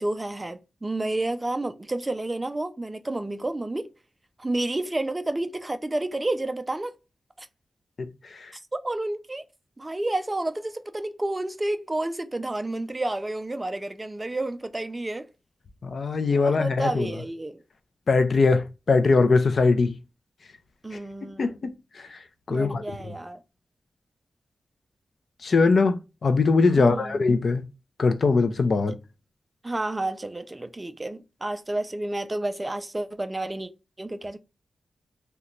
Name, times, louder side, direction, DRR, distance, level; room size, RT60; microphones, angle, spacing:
voice 1, 0.0-3.9 4.4-6.9 7.4-7.5 8.5-9.4 9.8-15.3 16.2-17.6 20.8-21.5 22.5-23.4 26.8-27.2 29.6-33.7 34.0-34.4, right 2 dB, 15° right, 0.3 m, -30 dB
voice 2, 15.8-17.1 18.1-19.9 21.4-21.7 22.5-23.1 25.4-27.6 28.0-29.0, left 4 dB, 50° left, 0.4 m, -21 dB
2.9 x 2.2 x 3.7 m
wide cardioid pair, 165°, 0 cm